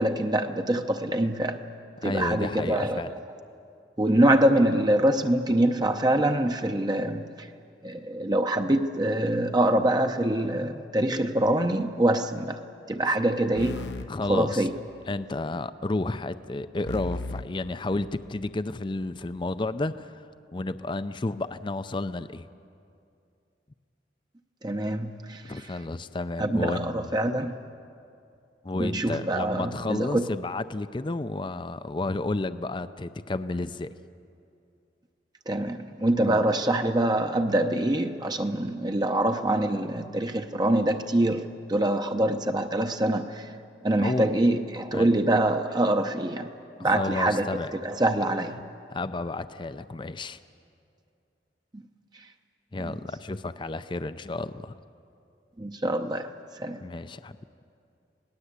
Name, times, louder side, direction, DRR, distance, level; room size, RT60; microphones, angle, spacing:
voice 1, 0.0-1.6 2.0-3.0 4.0-7.2 7.8-12.6 12.9-13.8 14.3-14.7 24.6-25.4 26.4-27.5 28.8-30.2 35.5-43.3 43.8-46.5 46.8-47.5 47.8-48.6 55.6-56.3 56.6-56.8, right 1 dB, 25° right, 5 dB, 0.7 m, -24 dB
voice 2, 2.0-3.1 13.0-13.2 14.1-14.7 15.1-20.2 20.5-22.5 25.4-27.2 28.6-33.9 36.2-36.4 44.0-44.3 44.9-45.1 46.8-47.8 48.9-50.4 52.7-54.7 56.8-57.4, left 2 dB, 25° left, 12 dB, 0.5 m, -31 dB
sound 1, 13.6-15.2 16.9-18.6, left 2 dB, 70° left, 0.9 m, -38 dB
27.5 x 18.5 x 8.2 m, 2.5 s
head